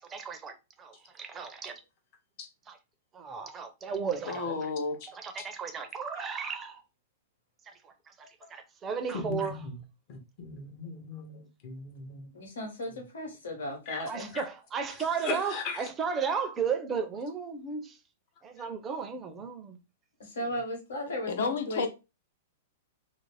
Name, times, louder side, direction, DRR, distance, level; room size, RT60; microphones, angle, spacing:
voice 1, 0.1-1.8 2.7-2.8 3.1-4.7 5.1-6.8 7.7-8.1 8.5-9.6 14.1-18.0 18.4-19.8, right 6 dB, 20° right, 0.5 m, -34 dB
voice 2, 4.3-5.0 21.3-21.9, left 4 dB, 70° left, 0.6 m, -31 dB
voice 3, 9.1-9.8 10.1-12.3 13.9-14.0 14.3-14.5 15.2-15.8, left 4 dB, 45° left, 0.8 m, -38 dB
voice 4, 12.3-14.3 20.2-21.9, left 1 dB, 85° left, 1.2 m, -36 dB
2.5 x 2.0 x 3.2 m
hypercardioid pair, 135°, 0 cm